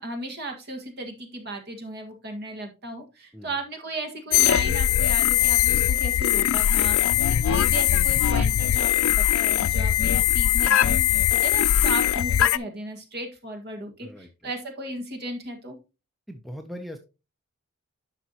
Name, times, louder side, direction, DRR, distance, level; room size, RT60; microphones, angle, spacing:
voice 1, 0.0-7.0 7.3-14.1 14.4-15.8, right 2 dB, 45° right, 3 dB, 1.7 m, -35 dB
sound 1, 4.3-12.6, left 11 dB, 70° left, 0.3 m, -21 dB
voice 2, 14.0-14.5 16.3-17.0, equal, ahead, 5 dB, 0.6 m, -40 dB
10.5 x 5.8 x 2.9 m, 0.29 s
head